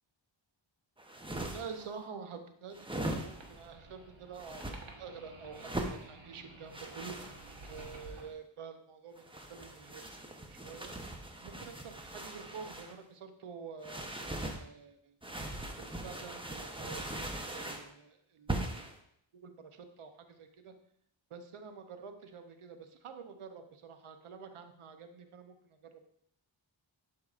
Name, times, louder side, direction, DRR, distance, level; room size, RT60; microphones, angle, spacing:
sound 1, 1.0-1.9 2.7-3.6 4.3-4.8 5.5-6.0 6.7-8.2 9.2-12.9 13.8-14.6 15.2-17.9 18.5-18.9, right 1 dB, 10° right, 0.8 m, -40 dB
voice 1, 1.5-10.0 10.5-10.9 11.4-15.1 15.8-17.2 17.5-18.9 19.4-20.7 21.3-26.0, right 5 dB, 90° right, 7 dB, 0.8 m, -48 dB
sound 2, 3.0-8.3, right 2 dB, 65° right, 1.2 m, -52 dB
11.0 x 4.6 x 2.4 m, 0.69 s
wide cardioid pair, 85°, 49 cm